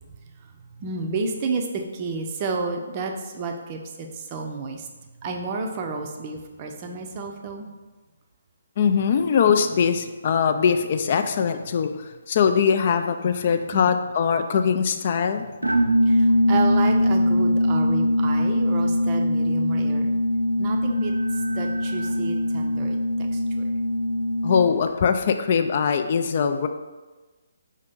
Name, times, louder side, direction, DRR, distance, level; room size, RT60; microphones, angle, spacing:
voice 1, 0.4-4.9 5.2-7.7 13.7-13.9 16.1-20.1 20.6-21.1 21.5-23.6, right 3 dB, 30° right, 3 dB, 0.5 m, -31 dB
voice 2, 8.8-15.7 24.4-26.7, left 6 dB, 40° left, 8 dB, 0.3 m, -22 dB
sound 1, 15.6-24.9, left 1 dB, 90° right, 0.4 m, -22 dB
4.8 x 2.7 x 3.6 m, 1.2 s
figure-of-eight pair, 140°, 0 cm